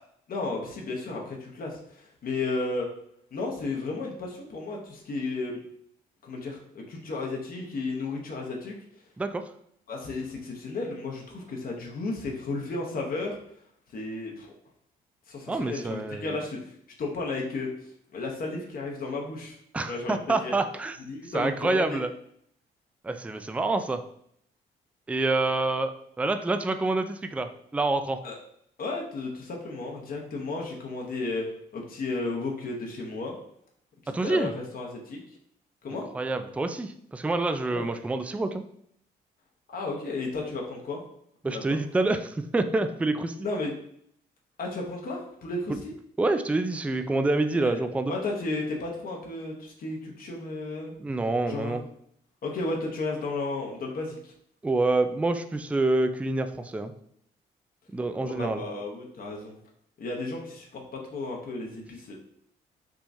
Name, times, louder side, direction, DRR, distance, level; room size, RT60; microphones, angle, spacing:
voice 1, 0.3-2.9 3.3-5.6 6.2-8.7 9.9-13.4 13.9-14.5 15.3-16.7 17.0-19.6 19.9-20.5 21.1-22.0 28.2-28.4 28.8-31.4 31.7-33.3 34.0-35.2 35.8-36.1 37.7-37.9 39.7-41.0 41.5-41.8 43.4-43.7 44.6-45.9 47.5-47.8 48.1-50.9 51.4-51.8 52.4-54.3 58.2-59.5 60.0-62.1, left 3 dB, 55° left, -1 dB, 0.9 m, -33 dB
voice 2, 9.2-9.5 15.5-16.4 19.7-21.0 21.3-22.1 23.0-24.0 25.1-28.2 34.1-34.5 36.1-38.6 41.4-43.5 46.2-48.1 51.0-51.8 54.6-56.9 57.9-58.6, right 2 dB, 5° right, 8 dB, 0.3 m, -27 dB
3.6 x 2.9 x 2.6 m, 0.68 s
supercardioid pair, 60°, 18 cm